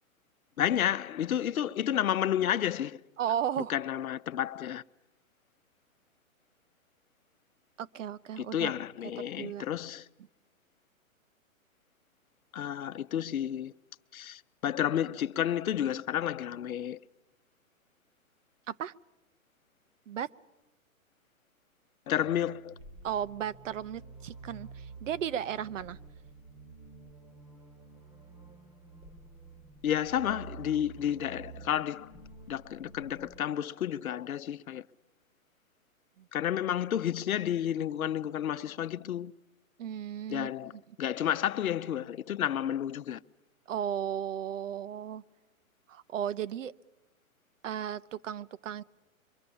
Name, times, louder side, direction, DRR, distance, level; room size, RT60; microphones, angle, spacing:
voice 1, 0.6-3.0 3.7-4.8 8.4-10.1 12.5-13.7 14.1-17.0 22.1-22.7 29.8-32.1 32.5-34.9 36.3-39.3 40.3-40.7 41.0-43.2, left 10 dB, 85° left, 0.8 m, -31 dB
voice 2, 3.2-3.7 7.8-8.7 9.4-9.6 18.7-18.9 20.1-20.3 23.0-26.0 36.2-36.3 39.8-40.7 43.7-45.2 45.9-46.7 47.6-48.8, right 9 dB, 65° right, 0.8 m, -35 dB
sound 1, 22.3-33.4, right 4 dB, 10° right, 1.0 m, -50 dB
25.0 x 24.0 x 7.0 m
hypercardioid pair, 150°, 41 cm